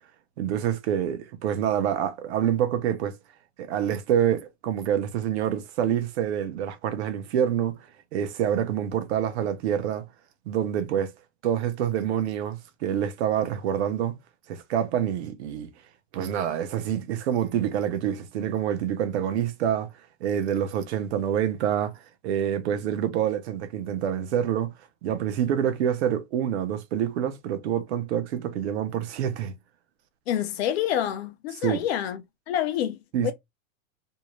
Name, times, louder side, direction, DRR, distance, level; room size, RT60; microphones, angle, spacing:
voice 1, 0.4-3.2 3.6-7.8 8.1-10.1 10.5-11.1 11.4-14.2 14.5-15.7 16.1-19.9 20.2-21.9 22.2-24.7 25.0-29.5 31.6-31.8 33.1-33.3, right 9 dB, 55° right, 0.7 m, -26 dB
voice 2, 30.3-32.2 32.5-33.3, left 10 dB, 50° left, 0.6 m, -27 dB
2.6 x 2.1 x 2.9 m
supercardioid pair, 165°, 40 cm